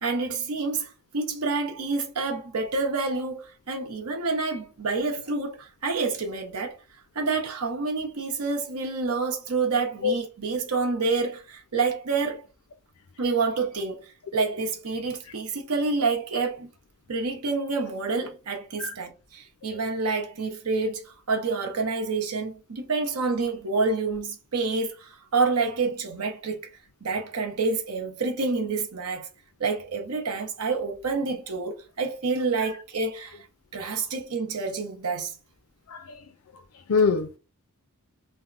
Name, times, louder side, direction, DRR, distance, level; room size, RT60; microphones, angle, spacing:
voice 1, 0.0-6.8 7.1-12.4 13.2-16.7 17.1-26.6 27.0-29.3 29.6-33.4 33.7-35.3, right 4 dB, 80° right, 0.8 m, -28 dB
voice 2, 36.9-37.4, left 5 dB, 65° left, 0.5 m, -23 dB
3.3 x 2.1 x 2.5 m
head